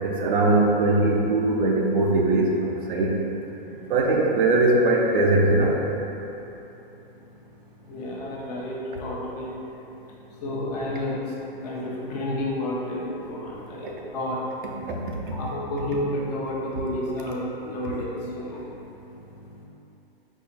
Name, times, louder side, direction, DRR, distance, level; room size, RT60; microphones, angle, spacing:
voice 1, 0.0-3.1 3.9-5.8 13.8-13.9 14.8-15.0, right 2 dB, 60° right, -1 dB, 0.7 m, -21 dB
voice 2, 7.9-9.5 10.4-11.3 11.6-14.4 15.3-18.6, left 1 dB, 45° left, -4 dB, 0.9 m, -30 dB
4.5 x 2.4 x 4.5 m, 2.9 s
hypercardioid pair, 140°, 29 cm